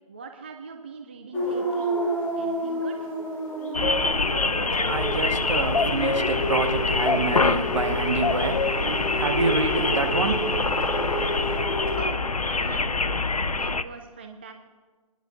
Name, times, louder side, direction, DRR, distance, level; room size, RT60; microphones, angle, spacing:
voice 1, 0.1-1.9 2.4-3.1 12.0-13.0 13.5-14.5, right 5 dB, 20° right, 0.3 m, -41 dB
sound 1, 1.3-12.0, right 1 dB, 10° left, 1.1 m, -30 dB
sound 2, 3.7-13.8, left 3 dB, 75° left, 0.6 m, -25 dB
voice 2, 4.8-11.6, right 3 dB, 55° right, 1.2 m, -28 dB
27.5 x 11.0 x 2.5 m
figure-of-eight pair, 140°, 19 cm